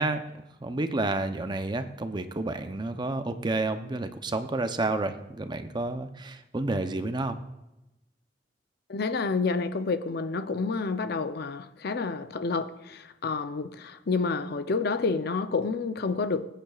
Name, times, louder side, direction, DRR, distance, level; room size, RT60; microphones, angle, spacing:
voice 1, 0.0-7.4, right 2 dB, 25° right, 0.6 m, -30 dB
voice 2, 8.9-16.4, left 4 dB, 60° left, 0.6 m, -29 dB
18.5 x 9.0 x 2.4 m
head